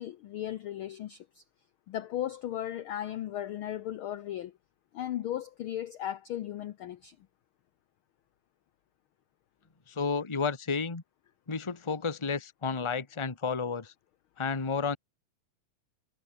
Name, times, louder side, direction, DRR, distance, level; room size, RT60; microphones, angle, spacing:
voice 1, 0.0-1.4 1.9-4.5 4.9-7.2, left 12 dB, 75° left, 1.2 m, -36 dB
voice 2, 9.9-11.0 11.5-13.9 14.4-15.0, left 5 dB, 15° left, 1.1 m, -31 dB
omnidirectional pair, 3.3 m